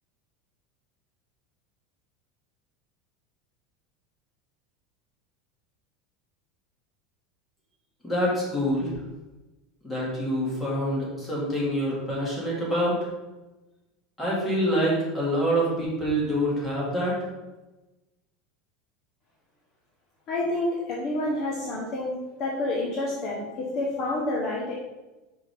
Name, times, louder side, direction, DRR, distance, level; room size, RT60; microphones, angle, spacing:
voice 1, 8.0-8.9 9.8-13.0 14.2-17.1, equal, 10° left, -6 dB, 2.1 m, -26 dB
voice 2, 20.3-22.1 22.4-24.7, left 2 dB, 35° left, -3 dB, 1.0 m, -28 dB
5.6 x 5.5 x 3.4 m, 1.1 s
supercardioid pair, 160°, 0 cm